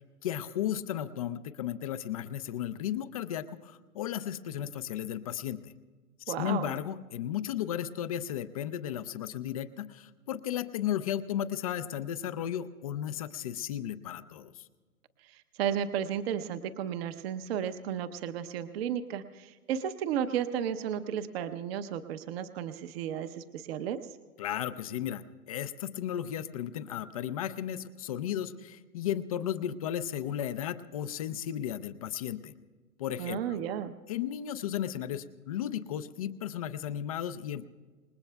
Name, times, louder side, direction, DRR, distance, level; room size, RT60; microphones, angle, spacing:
voice 1, 0.2-5.7 6.3-14.7 24.4-32.5 33.0-33.6 34.1-37.7, left 10 dB, 25° left, 13 dB, 0.4 m, -34 dB
voice 2, 6.3-6.7 15.3-24.0 33.2-33.9, right 9 dB, 45° right, 9 dB, 0.8 m, -33 dB
27.0 x 20.5 x 2.3 m, 1.4 s
hypercardioid pair, 120°, 44 cm